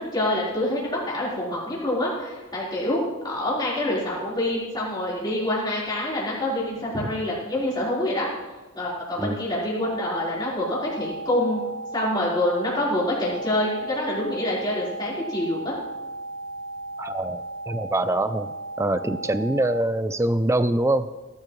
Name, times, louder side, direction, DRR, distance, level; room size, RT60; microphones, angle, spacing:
voice 1, 0.0-8.3 8.7-11.6 11.9-15.7, left 1 dB, 20° left, -8 dB, 4.3 m, -26 dB
sound 1, 9.8-19.8, right 2 dB, 70° right, 0.9 m, -36 dB
voice 2, 17.0-21.1, right 1 dB, 10° right, 12 dB, 0.4 m, -24 dB
18.0 x 12.5 x 3.2 m, 1.2 s
head